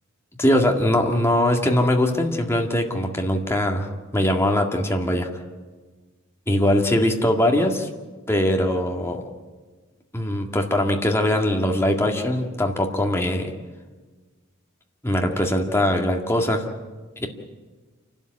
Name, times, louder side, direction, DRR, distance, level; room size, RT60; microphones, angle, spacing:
voice 1, 0.4-3.9 4.1-5.3 6.5-7.9 8.3-9.2 10.1-13.5 15.0-16.6 17.2-17.3, left 1 dB, 10° left, 2 dB, 2.0 m, -21 dB
28.0 x 12.5 x 9.7 m, 1.4 s
head